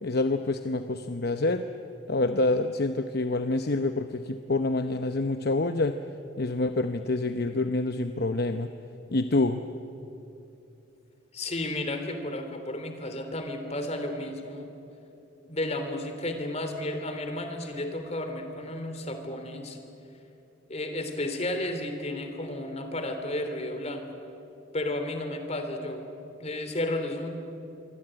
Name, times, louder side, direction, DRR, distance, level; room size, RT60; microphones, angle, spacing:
voice 1, 0.0-1.6 2.1-6.0 6.4-8.7 9.1-9.6, left 2 dB, 55° left, 8 dB, 0.8 m, -27 dB
voice 2, 11.3-14.7 15.4-19.8 20.7-24.1 24.7-26.1 26.4-27.3, left 1 dB, 35° left, 6 dB, 3.2 m, -32 dB
26.0 x 23.5 x 9.0 m, 2.8 s
head